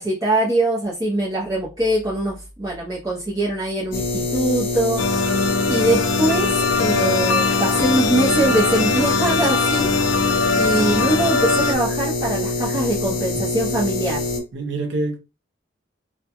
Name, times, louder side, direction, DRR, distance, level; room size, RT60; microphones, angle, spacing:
voice 1, 0.0-6.5 6.8-14.2, right 1 dB, 20° right, 0.6 m, -23 dB
sound 1, 3.9-14.4, left 2 dB, 50° left, 0.6 m, -25 dB
sound 2, 5.0-11.7, left 4 dB, 85° left, 0.4 m, -21 dB
voice 2, 14.5-15.2, right 2 dB, 65° right, 0.5 m, -26 dB
2.3 x 2.1 x 2.8 m
head